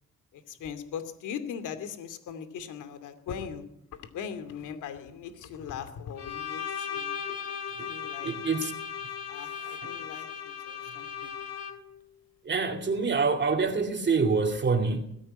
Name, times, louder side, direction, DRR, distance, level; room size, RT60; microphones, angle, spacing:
voice 1, 0.3-7.2 7.9-8.4 8.6-8.7 9.3-11.3, left 7 dB, 80° left, 2.6 m, -40 dB
Bowed string instrument, 6.2-12.0, left 7 dB, 55° left, 3.4 m, -37 dB
voice 2, 8.2-8.7 9.6-9.9 12.4-15.0, right 4 dB, 35° right, 2.5 m, -26 dB
21.0 x 15.0 x 8.9 m
cardioid pair, 90°, 30 cm